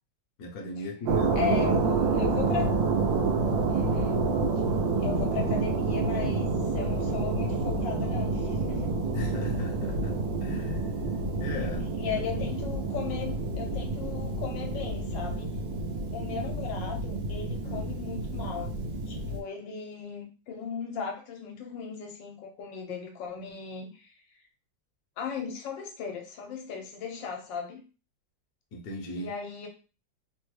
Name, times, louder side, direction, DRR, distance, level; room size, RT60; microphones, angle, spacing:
voice 1, 0.4-1.4 9.1-10.8 11.4-12.2 17.6-17.9 28.7-29.3, left 2 dB, 65° left, 1.1 m, -38 dB
sound 1, 1.1-19.4, right 3 dB, 80° right, 1.4 m, -28 dB
voice 2, 1.4-2.7 3.7-4.3 5.0-8.9 12.0-15.6 16.1-18.7 19.1-24.1 25.2-27.8 29.1-29.7, left 6 dB, 80° left, 1.4 m, -36 dB
3.5 x 2.2 x 3.1 m
omnidirectional pair, 2.0 m